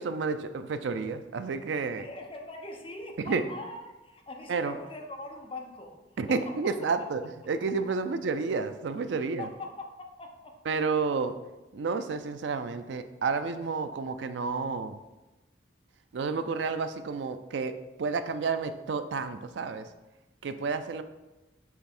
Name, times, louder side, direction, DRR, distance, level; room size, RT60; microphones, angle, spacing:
voice 1, 0.0-2.1 3.2-3.4 4.5-4.8 6.2-9.5 10.7-11.4 11.7-15.0 16.1-19.9 20.4-21.0, right 4 dB, 80° right, 10 dB, 0.4 m, -30 dB
voice 2, 2.0-6.0 6.3-7.1 9.4-10.5, left 2 dB, 30° left, 1 dB, 0.9 m, -42 dB
7.4 x 3.4 x 4.3 m, 1.1 s
head